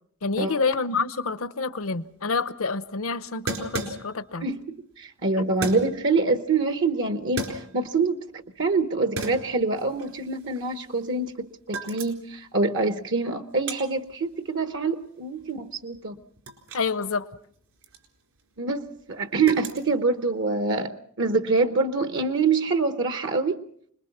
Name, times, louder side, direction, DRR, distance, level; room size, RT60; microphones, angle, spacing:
voice 1, 0.2-4.5 5.4-5.5 16.7-17.3, left 4 dB, 70° left, 0.9 m, -28 dB
sound 1, 1.8-1.9 2.1-2.2 3.5-4.4 5.6-6.1 7.1-8.0 8.5-8.8 9.2-11.3 11.6-12.4 12.7-16.9 17.2-20.5, right 2 dB, 75° right, 4.1 m, -36 dB
voice 2, 4.4-16.2 18.6-23.6, right 3 dB, 55° right, 0.9 m, -25 dB
25.5 x 21.0 x 5.9 m
head